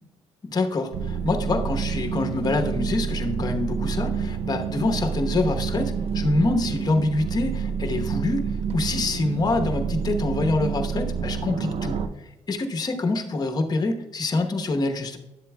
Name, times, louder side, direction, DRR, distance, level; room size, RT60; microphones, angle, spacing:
voice 1, 0.4-12.0 12.5-15.2, left 2 dB, 35° left, 5 dB, 1.0 m, -25 dB
sound 1, 0.9-12.1, right 6 dB, 60° right, 0.5 m, -28 dB
10.5 x 7.5 x 2.2 m, 0.98 s
cardioid pair, 85°, 12 cm